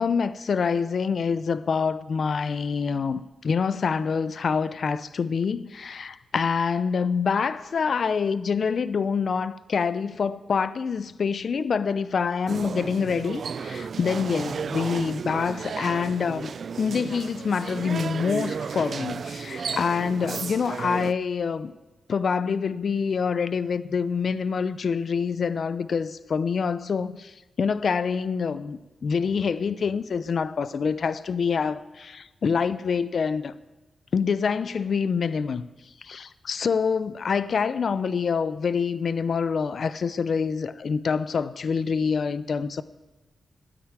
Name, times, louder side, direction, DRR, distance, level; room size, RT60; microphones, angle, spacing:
voice 1, 0.0-21.7 22.1-33.5 34.1-35.7 36.0-42.8, left 5 dB, 60° left, 0.6 m, -26 dB
sound 1, 12.5-21.1, right 6 dB, 60° right, 0.4 m, -33 dB
13.0 x 9.5 x 8.8 m
cardioid pair, 80°, 0 cm